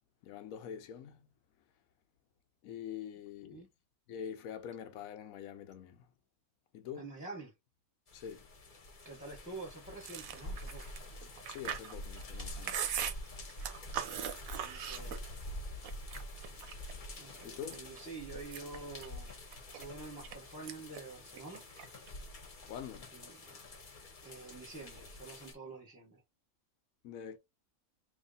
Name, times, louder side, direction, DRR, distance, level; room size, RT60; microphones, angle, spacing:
voice 1, 0.2-1.2 2.6-3.6 4.1-6.0 6.7-7.1 8.1-8.5 11.5-12.8 17.4-17.8 22.7-23.1 27.0-27.4, left 8 dB, 75° left, 1.1 m, -45 dB
voice 2, 6.9-7.5 9.0-10.9 14.6-15.2 17.2-19.4 19.8-21.6 23.1-23.6 24.2-26.2, right 3 dB, 5° right, 1.1 m, -47 dB
sound 1, 8.1-25.5, left 1 dB, 40° left, 1.0 m, -47 dB
Chewing mastication, 10.0-15.5 15.8-16.9 17.4-18.0 18.4-20.4 20.7-21.0 21.3-22.1, right 9 dB, 80° right, 1.1 m, -40 dB
3.1 x 2.8 x 4.0 m
omnidirectional pair, 1.5 m